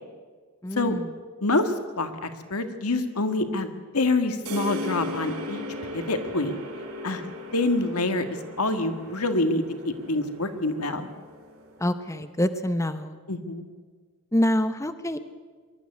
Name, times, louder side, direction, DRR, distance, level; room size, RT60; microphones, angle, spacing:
voice 1, 0.6-1.0 11.8-13.2 14.3-15.2, left 1 dB, 15° left, 11 dB, 0.7 m, -26 dB
voice 2, 1.4-5.6 5.9-6.6 7.0-7.2 7.5-11.1 13.3-13.6, left 2 dB, 85° left, 8 dB, 1.8 m, -26 dB
sound 1, 4.5-12.0, left 1 dB, 75° right, 3.6 m, -37 dB
23.0 x 12.5 x 9.6 m, 1.5 s
head